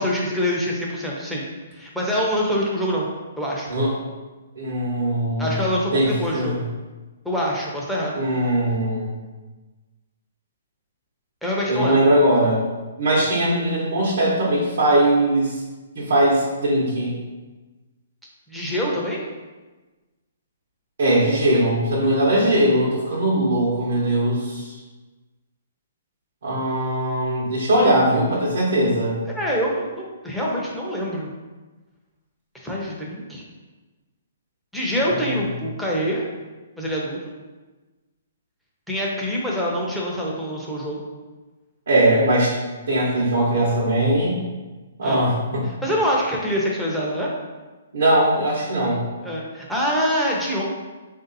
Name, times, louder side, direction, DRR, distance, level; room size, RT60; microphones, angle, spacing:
voice 1, 0.0-1.4 1.7-3.1 3.4-3.7 5.4-6.6 7.2-8.2 11.4-12.0 18.5-19.2 29.3-31.3 32.6-33.4 34.7-36.3 36.8-37.3 38.9-41.1 45.0-45.3 45.8-47.3 49.2-50.6, equal, ahead, -5 dB, 0.7 m, -25 dB
voice 2, 4.6-5.5 5.9-6.6 8.1-9.2 11.7-12.7 13.0-15.6 15.9-17.1 21.0-24.8 26.4-29.2 35.1-35.2 41.9-42.6 42.9-44.4 45.0-45.7 47.9-49.0, right 1 dB, 70° right, -6 dB, 1.0 m, -20 dB
3.6 x 2.7 x 4.0 m, 1.2 s
hypercardioid pair, 145°, 0 cm